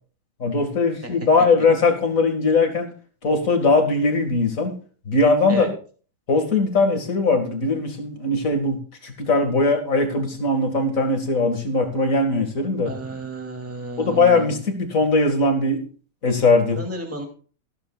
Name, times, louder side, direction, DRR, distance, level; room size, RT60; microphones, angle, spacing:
voice 1, 0.4-2.9 3.2-4.7 5.1-5.6 6.3-12.9 14.0-15.8 16.2-16.8, left 3 dB, 40° left, 5 dB, 2.4 m, -20 dB
voice 2, 12.8-14.6 16.8-17.3, right 1 dB, 5° right, 2 dB, 2.5 m, -32 dB
15.5 x 13.0 x 2.4 m, 0.40 s
omnidirectional pair, 2.3 m